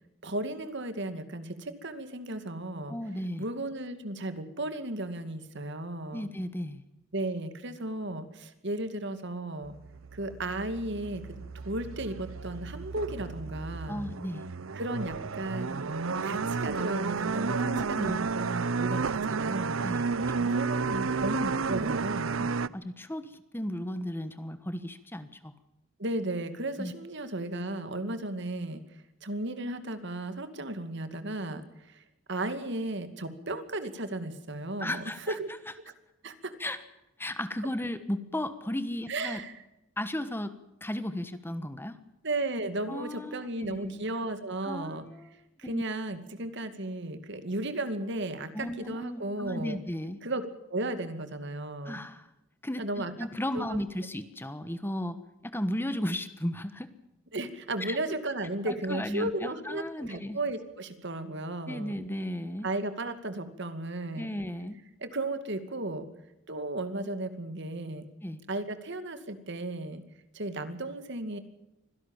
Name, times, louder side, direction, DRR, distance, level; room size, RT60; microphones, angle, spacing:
voice 1, 0.2-3.0 3.4-6.3 7.1-9.7 10.1-11.2 11.6-14.1 14.7-15.8 16.2-19.9 20.5-22.5 26.0-28.8 29.2-31.6 31.9-32.0 32.3-35.5 36.2-36.6 39.1-39.6 42.2-45.1 45.6-49.8 50.2-52.0 52.8-53.1 53.5-53.8 57.3-62.0 62.6-64.3 65.0-66.1 66.5-68.0 68.5-70.0 70.3-71.4, right 2 dB, 60° right, 10 dB, 2.4 m, -35 dB
voice 2, 2.9-3.5 6.1-6.8 13.9-14.5 17.6-18.2 19.8-20.1 20.4-20.5 22.7-23.3 23.5-25.5 26.8-26.9 34.8-35.4 36.6-36.8 37.2-39.4 40.0-40.6 40.8-42.0 42.9-44.0 44.6-45.3 45.6-45.8 48.5-50.2 51.8-52.3 52.6-55.2 55.4-56.9 57.8-58.0 58.7-60.4 61.7-62.7 64.1-64.8 68.2-68.4, left 1 dB, 10° left, 11 dB, 1.3 m, -35 dB
sound 1, 9.6-22.7, right 4 dB, 85° right, 0.7 m, -32 dB
25.0 x 17.0 x 7.3 m, 0.91 s
head